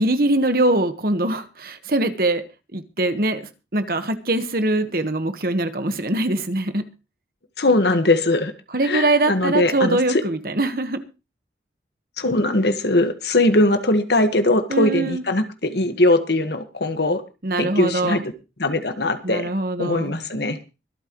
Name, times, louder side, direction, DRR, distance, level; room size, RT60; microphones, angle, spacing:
voice 1, 0.0-2.4 2.7-3.4 3.7-6.8 8.7-11.0 14.7-15.2 17.4-18.2 19.2-20.1, right 2 dB, 50° right, 9 dB, 1.4 m, -22 dB
voice 2, 7.6-8.5 8.8-10.2 12.2-17.2 17.6-18.2 18.6-19.5 19.8-20.6, left 2 dB, 65° left, 9 dB, 1.6 m, -20 dB
24.5 x 9.0 x 3.1 m, 0.30 s
head